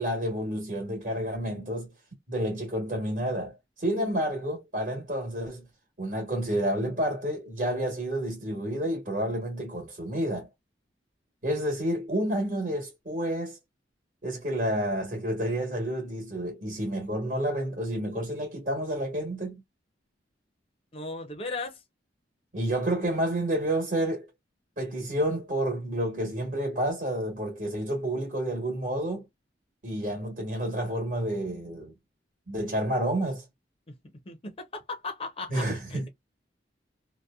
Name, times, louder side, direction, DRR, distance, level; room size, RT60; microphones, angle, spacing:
voice 1, 0.0-1.9 2.3-5.7 6.0-10.5 11.4-13.6 14.2-19.6 22.5-24.3 24.8-29.2 29.8-31.9 32.5-33.4 35.5-36.1, right 1 dB, 45° right, 1.2 m, -30 dB
voice 2, 20.9-21.8 33.9-34.0 34.3-36.1, left 3 dB, 30° left, 0.6 m, -37 dB
2.7 x 2.1 x 2.3 m
head